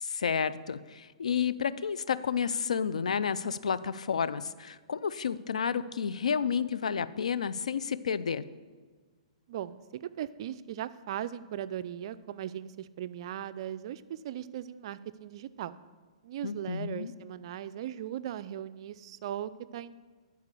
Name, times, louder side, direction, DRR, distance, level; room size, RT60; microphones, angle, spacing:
voice 1, 0.0-8.4 16.4-17.1, left 7 dB, 85° left, 15 dB, 0.4 m, -31 dB
voice 2, 9.5-15.8 16.2-19.9, right 11 dB, 50° right, 14 dB, 0.4 m, -38 dB
9.8 x 4.7 x 6.7 m, 1.5 s
hypercardioid pair, 140°, 4 cm